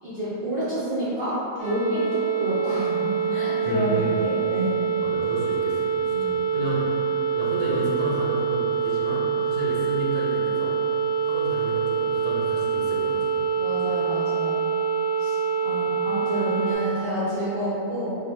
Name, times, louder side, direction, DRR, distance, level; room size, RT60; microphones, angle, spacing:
voice 1, 0.0-4.7 6.1-6.3 13.6-14.6 15.2-15.4 15.6-18.2, equal, 65° right, -11 dB, 0.5 m, -28 dB
sound 1, 1.6-16.8, right 6 dB, 25° left, 0.9 m, -25 dB
voice 2, 3.6-4.2 5.0-7.0 7.3-10.8 11.2-13.4, right 1 dB, 80° right, -4 dB, 1.2 m, -32 dB
2.6 x 2.1 x 3.1 m, 2.7 s
omnidirectional pair, 1.7 m